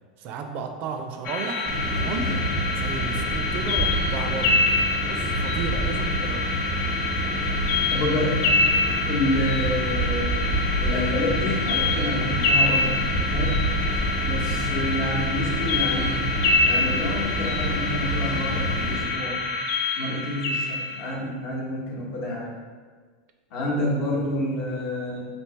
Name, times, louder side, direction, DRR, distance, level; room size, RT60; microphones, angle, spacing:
voice 1, 0.2-2.3 2.7-4.7 5.0-6.5 14.6-14.8 24.1-24.6, right 5 dB, 45° right, 5 dB, 0.4 m, -34 dB
sound 1, 1.2-21.1, left 3 dB, 45° left, 0.4 m, -26 dB
sound 2, 1.6-19.0, right 1 dB, 25° left, 0.9 m, -28 dB
voice 2, 7.9-8.5 9.1-10.4 10.8-13.8 14.2-16.2 16.6-19.4 20.0-22.5 23.5-25.3, left 1 dB, 60° left, -3 dB, 0.9 m, -28 dB
3.3 x 2.7 x 3.1 m, 1.5 s
supercardioid pair, 130°, 4 cm